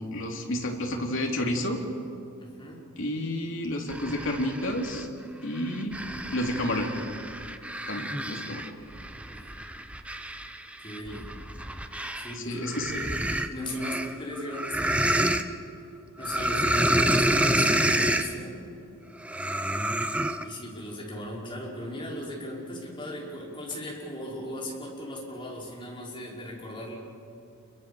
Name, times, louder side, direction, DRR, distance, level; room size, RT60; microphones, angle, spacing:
voice 1, 0.0-1.8 3.0-5.1 5.4-5.9 6.3-7.0 7.9-8.7 12.3-12.9, left 1 dB, 60° left, 1 dB, 3.4 m, -30 dB
voice 2, 2.4-2.8 9.3-9.5 10.8-11.3 12.1-13.1 13.5-15.2 16.2-18.6 20.4-27.0, left 1 dB, 20° left, -3 dB, 5.5 m, -37 dB
sound 1, 3.9-5.0 5.6-12.3 12.6-15.4 16.2-18.3 19.2-20.4, right 1 dB, 5° right, 0.9 m, -28 dB
29.0 x 23.0 x 7.2 m, 2.7 s
head